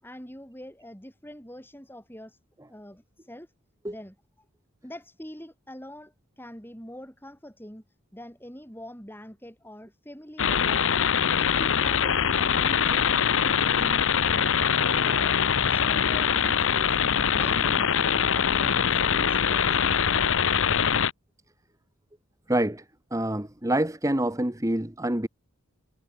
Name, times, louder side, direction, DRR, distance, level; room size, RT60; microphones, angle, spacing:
voice 1, 0.0-2.4 2.7-3.5 3.9-4.2 4.8-7.8 8.1-10.9 11.3-14.5 14.8-15.4 15.7-17.0 17.3-19.9, equal, 10° left, 7.1 m, -44 dB
sound 1, 10.4-21.1, left 7 dB, 60° left, 0.8 m, -23 dB
voice 2, 22.5-22.8 23.1-25.3, right 1 dB, 15° right, 1.1 m, -26 dB
head